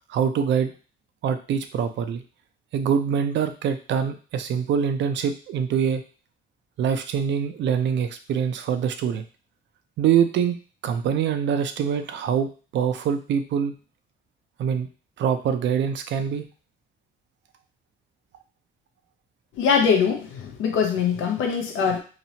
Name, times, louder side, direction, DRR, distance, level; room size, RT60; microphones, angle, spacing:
voice 1, 0.1-0.7 1.2-2.2 2.7-6.0 6.8-9.2 10.0-10.5 10.8-13.7 14.6-14.9 15.2-16.4, right 7 dB, 65° right, 8 dB, 0.4 m, -24 dB
voice 2, 19.5-22.0, left 6 dB, 85° left, 4 dB, 0.5 m, -22 dB
2.9 x 2.0 x 2.7 m, 0.36 s
cardioid pair, 90°, 20 cm